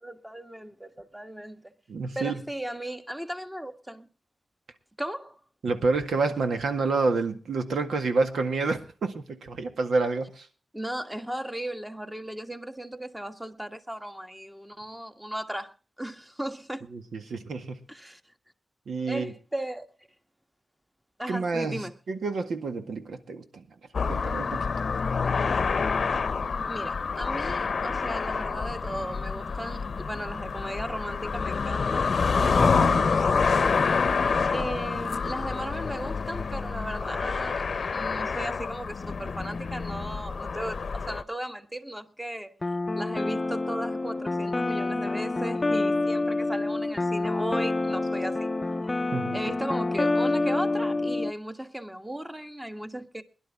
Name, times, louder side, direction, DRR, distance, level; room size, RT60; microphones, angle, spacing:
voice 1, 0.0-1.6 2.1-4.1 5.0-5.4 10.7-15.7 16.0-16.8 17.9-18.2 19.1-19.9 21.2-21.9 26.7-32.1 34.5-42.5 43.0-48.5 49.3-53.2, right 1 dB, 10° right, 1.4 m, -36 dB
voice 2, 1.9-2.4 5.6-10.5 16.9-17.8 18.9-19.3 21.3-23.6 24.1-24.7 32.4-33.2 49.1-49.4, right 3 dB, 85° right, 1.8 m, -29 dB
sound 1, 23.9-41.2, left 5 dB, 60° left, 0.7 m, -27 dB
sound 2, 42.6-51.3, left 2 dB, 30° left, 0.6 m, -27 dB
21.5 x 11.0 x 3.6 m
cardioid pair, 75°, 0 cm